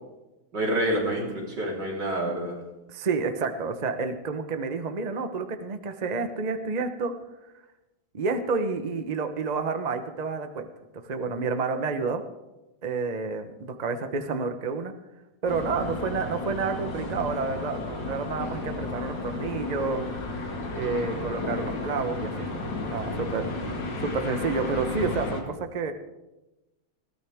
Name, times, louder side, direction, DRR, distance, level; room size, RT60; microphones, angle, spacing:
voice 1, 0.5-2.6, right 1 dB, 55° right, -4 dB, 4.7 m, -27 dB
voice 2, 2.9-7.1 8.1-10.7 11.1-12.2 12.8-14.9 15.4-20.0 20.7-22.6 22.9-25.9, right 4 dB, 35° right, 7 dB, 0.6 m, -29 dB
sound 1, 15.5-25.4, left 2 dB, 60° left, 2.7 m, -33 dB
21.0 x 15.5 x 3.6 m, 1.0 s
omnidirectional pair, 2.2 m